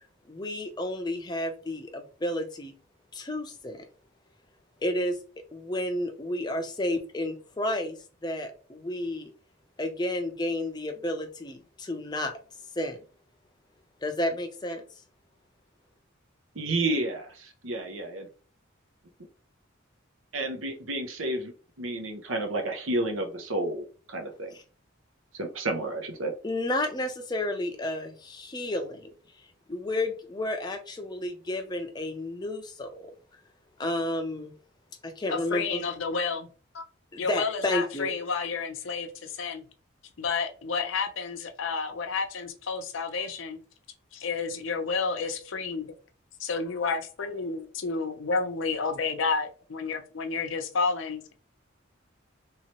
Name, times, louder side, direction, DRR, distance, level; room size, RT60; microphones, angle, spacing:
voice 1, 0.3-2.7 3.1-3.9 4.8-5.2 5.5-9.3 9.8-12.3 12.8-13.0 14.0-14.8 24.5-24.6 26.4-29.1 29.7-33.1 33.8-34.5 35.0-35.8 37.1-38.1, left 1 dB, 20° left, 0.5 m, -31 dB
voice 2, 16.5-18.3 20.3-21.5 21.8-24.6 25.3-26.3, right 2 dB, 80° right, 0.8 m, -31 dB
voice 3, 35.3-36.5 36.7-36.8 37.2-39.6 40.2-43.6 44.1-45.9 46.4-51.3, left 4 dB, 75° left, 0.6 m, -30 dB
3.1 x 2.9 x 2.9 m
head